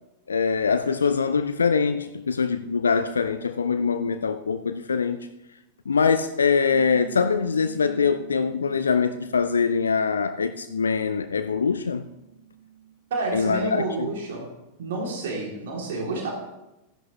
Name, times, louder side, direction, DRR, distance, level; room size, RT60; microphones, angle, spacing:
voice 1, 0.3-5.2 5.9-12.0 13.3-14.1, left 5 dB, 70° left, 0.4 m, -23 dB
sound 1, 6.7-12.9, right 10 dB, 45° right, 4.7 m, -44 dB
voice 2, 13.1-14.5 14.8-16.3, right 3 dB, 60° right, 2.9 m, -29 dB
14.0 x 10.5 x 3.1 m
figure-of-eight pair, 90°, 0 cm